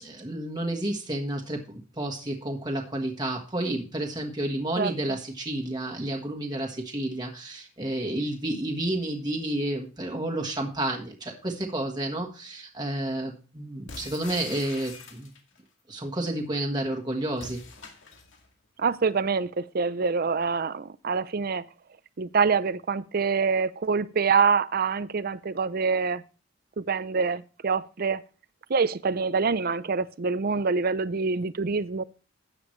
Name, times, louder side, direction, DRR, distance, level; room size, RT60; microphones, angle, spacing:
voice 1, 0.0-15.3 15.9-17.6, right 1 dB, 20° right, 1.4 m, -31 dB
voice 2, 4.8-5.2 18.8-21.7 22.2-26.2 26.8-28.2 28.7-32.0, right 5 dB, 50° right, 0.5 m, -26 dB
sound 1, 13.9-15.6 17.3-18.5, left 4 dB, 65° left, 2.3 m, -44 dB
13.0 x 9.0 x 3.2 m
head